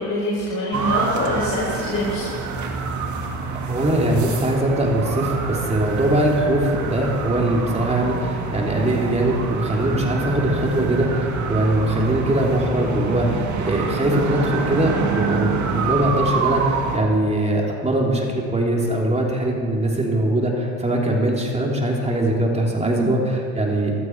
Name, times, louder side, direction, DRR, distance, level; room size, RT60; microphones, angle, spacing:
voice 1, 0.0-2.4 22.8-23.1, left 1 dB, 35° left, -7 dB, 4.4 m, -25 dB
sound 1, 0.7-17.0, right 5 dB, 55° right, 1.9 m, -26 dB
voice 2, 3.7-23.9, right 1 dB, 20° right, -1 dB, 3.2 m, -21 dB
15.5 x 12.5 x 4.7 m, 2.2 s
supercardioid pair, 85°, 36 cm